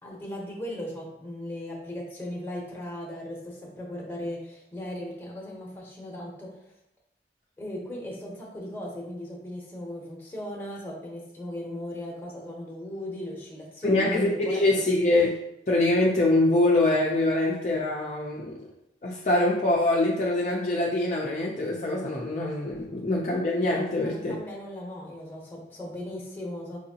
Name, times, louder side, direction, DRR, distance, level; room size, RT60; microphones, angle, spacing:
voice 1, 0.0-6.5 7.6-14.6 22.9-23.1 24.0-26.8, left 1 dB, 10° left, -3 dB, 0.8 m, -37 dB
voice 2, 13.8-18.6 19.0-24.4, left 2 dB, 40° left, -3 dB, 0.5 m, -24 dB
4.6 x 2.7 x 2.8 m, 0.78 s
head